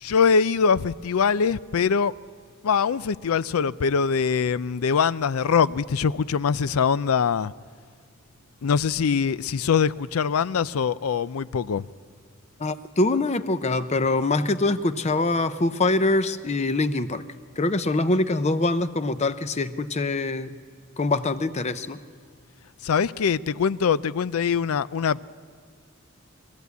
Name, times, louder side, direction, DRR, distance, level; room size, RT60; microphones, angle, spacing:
voice 1, 0.0-2.1 2.6-7.5 8.6-11.8 22.8-25.2, left 6 dB, 85° left, 0.4 m, -23 dB
voice 2, 12.6-17.2 17.6-20.5 21.0-22.0, left 2 dB, 30° left, 0.6 m, -24 dB
22.5 x 14.0 x 8.2 m
head